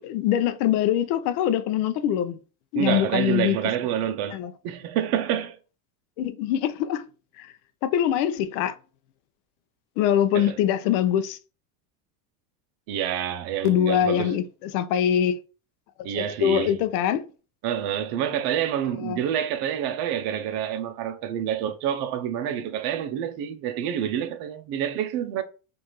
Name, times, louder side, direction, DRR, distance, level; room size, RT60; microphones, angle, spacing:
voice 1, 0.0-2.4 2.7-3.6 4.3-4.5 6.2-7.0 7.4-7.5 7.8-8.7 10.0-11.4 13.6-14.4 14.7-15.4 16.1-17.2 19.0-19.2, left 10 dB, 75° left, 0.6 m, -23 dB
voice 2, 2.7-4.4 4.6-5.6 10.3-10.6 12.9-14.3 16.0-16.8 17.6-25.4, right 9 dB, 55° right, 0.7 m, -27 dB
4.5 x 2.6 x 2.9 m
supercardioid pair, 130°, 45 cm